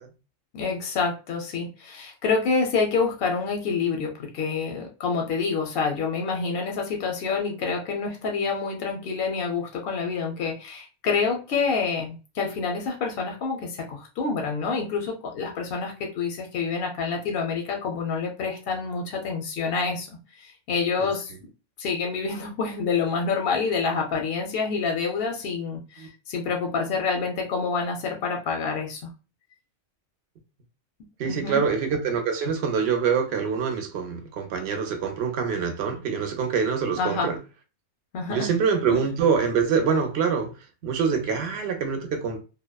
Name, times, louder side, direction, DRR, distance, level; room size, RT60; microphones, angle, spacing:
voice 1, 0.5-20.1 20.4-21.3 21.8-29.0 31.2-31.6 37.0-37.3 38.1-38.5 38.9-39.1, left 5 dB, 60° left, 0.6 m, -27 dB
voice 2, 31.2-37.4 38.3-40.5 40.8-42.4, right 6 dB, 65° right, 0.8 m, -25 dB
2.8 x 2.1 x 2.2 m
omnidirectional pair, 1.3 m